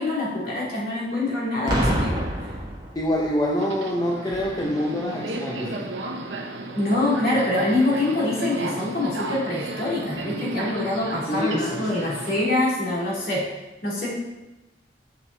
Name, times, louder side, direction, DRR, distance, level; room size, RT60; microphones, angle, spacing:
voice 1, 0.0-2.2 6.7-13.5 13.8-14.1, left 2 dB, 55° left, -5 dB, 2.9 m, -25 dB
Boom, 1.7-3.4 4.3-4.6, equal, 25° right, 1.5 m, -26 dB
voice 2, 2.9-5.7 11.3-12.1, equal, 20° left, -3 dB, 0.8 m, -26 dB
Subway metro underground, 3.5-12.4, right 2 dB, 90° right, 0.9 m, -34 dB
8.0 x 5.7 x 4.0 m, 1.0 s
head